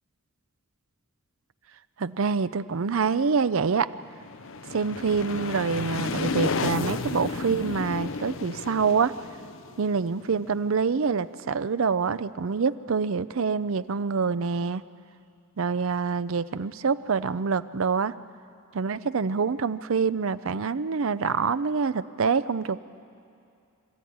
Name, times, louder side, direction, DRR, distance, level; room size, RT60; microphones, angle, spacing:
voice 1, 2.0-3.9 4.7-9.1 9.8-14.8 15.6-18.1 18.7-22.8, right 5 dB, 65° right, 14 dB, 0.5 m, -26 dB
sound 1, 4.0-10.7, left 4 dB, 60° left, 0.7 m, -32 dB
26.0 x 13.5 x 9.4 m, 2.5 s
head